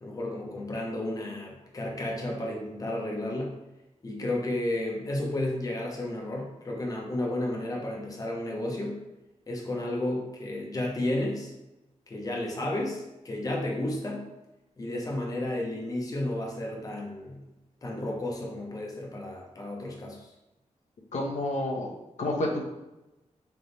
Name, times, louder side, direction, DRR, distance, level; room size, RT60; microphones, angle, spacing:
voice 1, 0.0-3.6 4.0-9.0 9.5-11.5 12.1-14.2 14.8-17.4 17.8-20.3, left 1 dB, 30° left, -1 dB, 0.8 m, -32 dB
voice 2, 21.1-22.6, left 1 dB, 70° left, -2 dB, 0.8 m, -30 dB
3.4 x 3.0 x 4.0 m, 0.98 s
wide cardioid pair, 130°, 13 cm